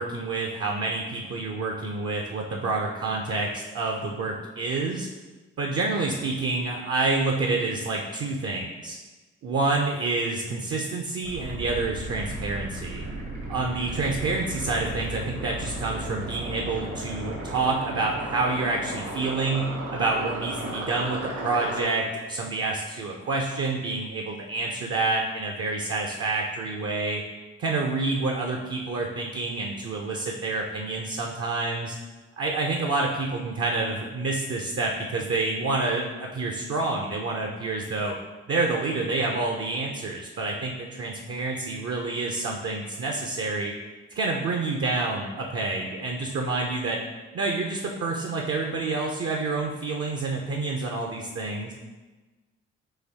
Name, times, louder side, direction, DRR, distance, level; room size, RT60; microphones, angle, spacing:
voice 1, 0.0-5.1 5.6-9.0 9.4-13.0 13.5-27.2 27.6-32.0 32.4-38.1 38.5-43.7 44.2-47.0 47.3-51.7, right 3 dB, 45° right, 1 dB, 0.6 m, -28 dB
sound 1, 11.2-21.8, right 1 dB, 70° right, 1.4 m, -35 dB
4.0 x 2.7 x 4.0 m, 1.2 s
hypercardioid pair, 45°, 32 cm